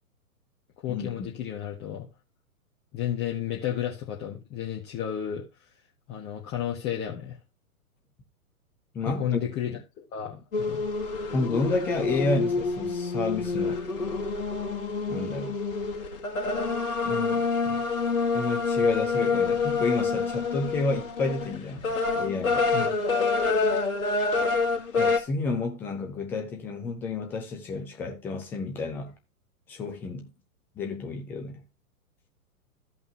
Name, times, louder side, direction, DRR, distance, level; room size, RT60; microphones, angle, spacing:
voice 1, 0.8-2.1 2.9-5.4 6.1-7.4 9.0-10.8 22.7-22.9, left 10 dB, 20° left, 1.3 m, -32 dB
voice 2, 8.9-9.4 11.3-13.8 15.1-15.6 17.0-17.9 18.3-21.8 22.2-22.7 25.0-29.1 29.7-30.3 30.8-31.6, left 3 dB, 5° left, 0.4 m, -30 dB
sound 1, 10.5-25.2, left 4 dB, 60° left, 2.2 m, -27 dB
14.5 x 5.4 x 2.8 m
figure-of-eight pair, 115°, 45 cm